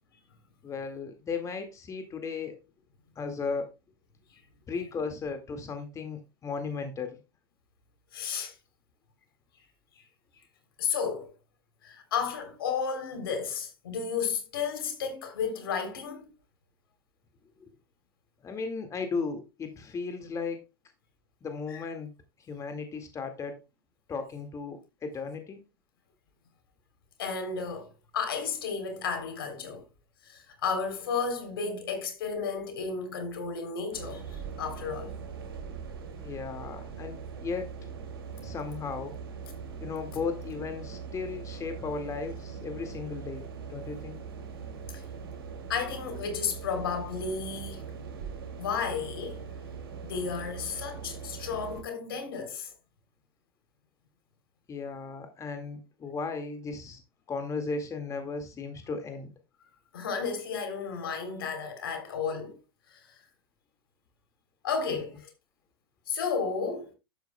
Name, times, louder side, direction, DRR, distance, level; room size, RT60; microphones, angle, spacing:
voice 1, 0.6-2.6 3.2-3.7 4.7-7.2 17.6-17.7 18.4-20.6 21.4-22.1 22.5-23.6 24.1-25.6 36.2-37.7 38.4-39.2 39.8-44.2 54.7-57.0 57.3-59.3, left 4 dB, 25° left, 1.9 m, -36 dB
voice 2, 8.1-8.6 10.8-11.3 11.8-16.3 21.7-21.8 27.2-29.8 30.2-35.1 44.9-45.0 45.7-47.8 48.6-49.5 50.0-52.7 59.9-62.6 62.9-63.2 64.6-65.3 66.1-66.9, left 5 dB, 75° left, 3.4 m, -33 dB
sound 1, 33.9-51.8, right 6 dB, 75° right, 2.5 m, -41 dB
12.0 x 9.4 x 2.2 m
hypercardioid pair, 95°, 12 cm